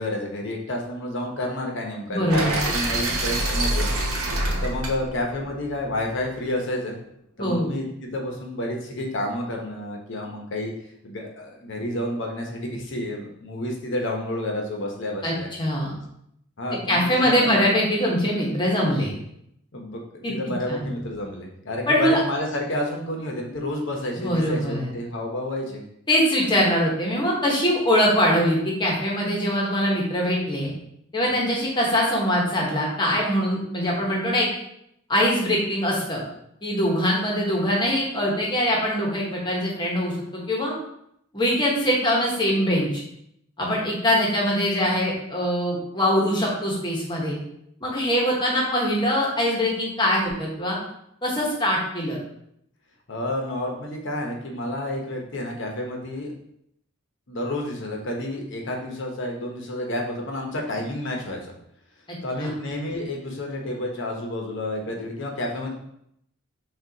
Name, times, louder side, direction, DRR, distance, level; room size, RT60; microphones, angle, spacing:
voice 1, 0.0-7.0 7.4-10.7 11.0-15.5 16.6-17.5 19.7-25.8 53.1-56.3 57.3-61.4 62.2-65.7, left 1 dB, 60° left, 1 dB, 0.8 m, -30 dB
voice 2, 2.1-2.6 7.4-7.7 15.2-16.0 16.9-19.1 20.2-20.3 20.7-20.8 21.9-22.2 24.2-24.9 26.1-30.7 31.1-34.5 35.1-36.2 36.6-40.7 41.3-42.9 43.6-47.4 47.8-50.8 51.2-52.2 62.1-62.5, equal, 20° left, -2 dB, 1.0 m, -23 dB
sound 1, 2.3-6.3, right 1 dB, 85° right, 0.8 m, -26 dB
6.1 x 2.4 x 2.8 m, 0.75 s
head